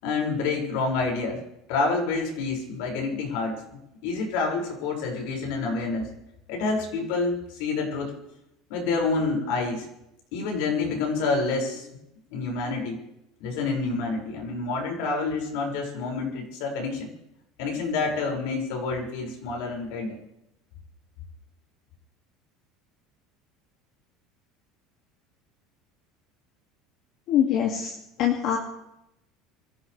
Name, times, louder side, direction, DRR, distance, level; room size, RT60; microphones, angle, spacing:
voice 1, 0.0-1.4 1.7-6.1 6.5-8.1 8.7-9.9 10.3-11.9 12.3-13.0 13.4-17.1 17.6-20.2, left 3 dB, 75° left, 0 dB, 6.0 m, -28 dB
voice 2, 27.3-28.6, left 9 dB, 55° left, 0 dB, 2.4 m, -24 dB
26.0 x 15.0 x 3.4 m, 0.85 s
cardioid pair, 145°, 0 cm